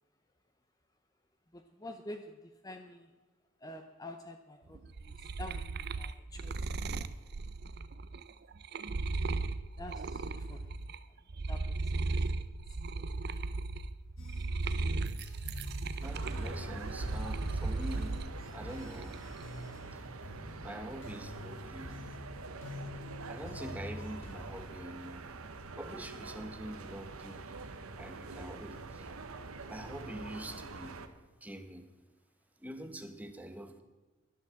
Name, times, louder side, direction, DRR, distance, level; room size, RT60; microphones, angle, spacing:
voice 1, 1.5-3.1 3.6-7.1 9.1-9.2 9.8-10.8 11.5-11.6 11.9-12.1 12.9-13.2, left 1 dB, 15° left, 7 dB, 0.6 m, -48 dB
sound 1, 4.7-11.0 11.3-18.3 18.7-19.4, right 3 dB, 50° right, 0.5 m, -36 dB
sound 2, 14.2-24.7, left 1 dB, 65° left, 1.4 m, -46 dB
voice 2, 16.0-19.3 19.9-20.2 20.6-22.1 23.2-25.4 25.7-27.6 28.0-29.1 29.7-31.0 31.4-32.0 32.6-33.8, right 1 dB, 5° right, 8 dB, 0.9 m, -45 dB
sound 3, 16.0-31.1, right 3 dB, 85° right, 1.1 m, -45 dB
11.5 x 11.0 x 7.6 m, 1.2 s
head